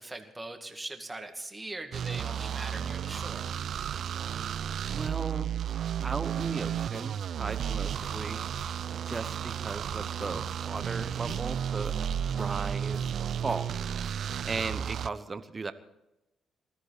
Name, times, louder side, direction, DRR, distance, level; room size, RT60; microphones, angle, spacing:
voice 1, 0.0-3.5, right 2 dB, 15° right, 5 dB, 2.1 m, -41 dB
sound 1, 1.9-15.1, right 9 dB, 65° right, 0.4 m, -33 dB
voice 2, 4.9-5.5 6.0-8.4 8.9-11.9 12.3-13.7 14.4-15.7, right 4 dB, 30° right, 12 dB, 1.0 m, -36 dB
sound 2, 6.4-7.1 7.5-8.9 9.1-9.4 9.7-11.6 11.8-13.1 13.5-13.8 14.0-15.1, left 2 dB, 30° left, 3.5 m, -47 dB
20.0 x 13.5 x 4.2 m, 0.93 s
cardioid pair, 90°, 0 cm